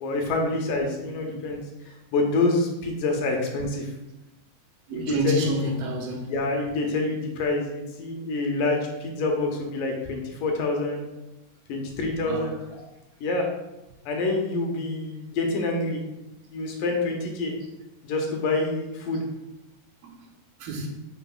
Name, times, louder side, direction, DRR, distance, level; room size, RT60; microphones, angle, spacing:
voice 1, 0.0-1.6 1.9-3.9 4.9-5.5 6.3-11.1 11.7-12.8 13.2-13.5 14.1-16.0 16.5-17.5 18.0-19.2, left 2 dB, 70° left, 1 dB, 2.4 m, -27 dB
voice 2, 4.9-6.3 12.3-12.5 20.6-20.9, right 1 dB, 80° right, 0 dB, 3.0 m, -28 dB
9.5 x 5.9 x 2.3 m, 0.97 s
omnidirectional pair, 4.3 m